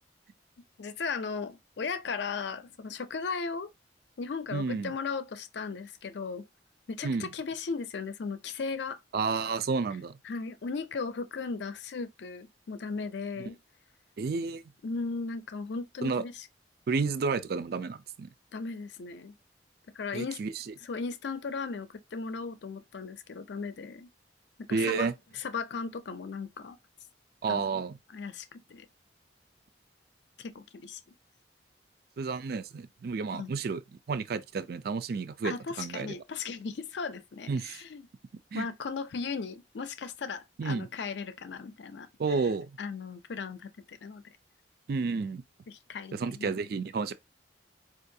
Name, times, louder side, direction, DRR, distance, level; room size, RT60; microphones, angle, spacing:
voice 1, 0.8-3.7 4.2-6.4 7.0-9.0 10.2-13.6 14.8-16.5 18.5-19.3 19.9-20.4 20.8-24.1 24.7-25.1 25.3-26.8 27.5-27.8 28.1-28.9 30.4-31.0 33.3-33.6 35.4-38.1 38.5-42.1 42.8-44.2 45.7-46.5, left 4 dB, 75° left, 0.5 m, -37 dB
voice 2, 4.5-4.9 7.0-7.3 9.1-10.2 14.2-14.6 16.0-16.2 16.9-18.3 20.1-20.6 24.7-25.1 27.4-28.0 32.2-33.8 34.1-36.1 37.5-37.8 38.5-38.7 40.6-40.9 42.2-42.7 44.9-45.4 46.1-47.1, right 4 dB, 55° right, 0.4 m, -31 dB
4.5 x 2.5 x 2.6 m
head